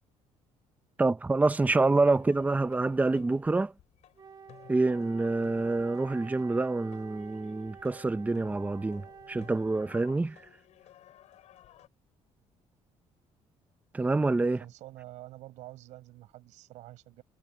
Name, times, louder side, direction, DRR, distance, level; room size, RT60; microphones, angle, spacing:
voice 1, 1.0-3.7 4.7-10.4 13.9-14.6, right 3 dB, 15° right, 0.8 m, -27 dB
sound 1, 2.1-11.9, left 12 dB, 70° left, 7.0 m, -56 dB
Wind instrument woodwind instrument, 4.2-10.5, right 6 dB, 35° right, 1.8 m, -49 dB
voice 2, 14.5-17.2, right 16 dB, 85° right, 6.3 m, -48 dB
cardioid pair, 115°, 12 cm